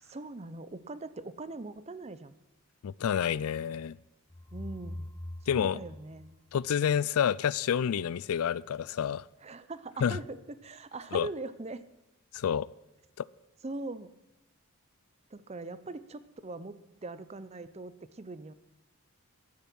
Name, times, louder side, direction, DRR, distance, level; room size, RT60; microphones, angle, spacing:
voice 1, 0.0-2.3 4.5-5.1 5.5-6.4 9.4-11.8 13.6-14.1 15.3-18.5, right 2 dB, 30° right, 0.6 m, -41 dB
voice 2, 2.8-4.0 5.5-5.8 6.5-9.3 10.0-10.2 11.1-11.3 12.3-12.7 13.2-13.3, left 8 dB, 80° left, 0.4 m, -28 dB
sound 1, 4.3-7.2, left 1 dB, 15° left, 1.2 m, -44 dB
14.0 x 10.5 x 6.1 m
head